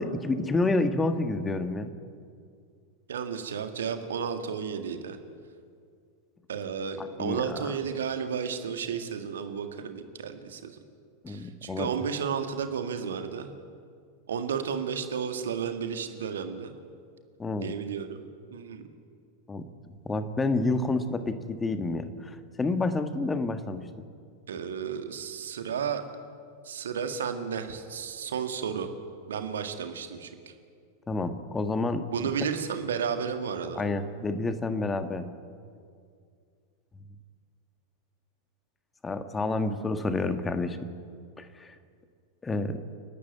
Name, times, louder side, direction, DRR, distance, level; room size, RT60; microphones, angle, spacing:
voice 1, 0.0-1.9 7.0-7.7 11.2-11.9 17.4-17.7 19.5-19.6 20.0-24.1 31.1-32.1 33.7-35.3 39.0-40.9 41.4-41.7 42.4-42.8, left 2 dB, 15° left, 9 dB, 1.5 m, -29 dB
voice 2, 3.1-5.2 6.5-10.8 11.3-13.6 14.3-16.7 17.6-18.8 24.5-26.0 26.6-28.9 29.3-30.5 32.1-33.8, right 7 dB, 65° right, 7 dB, 1.8 m, -33 dB
29.5 x 12.0 x 9.4 m, 2.2 s
figure-of-eight pair, 90°, 0 cm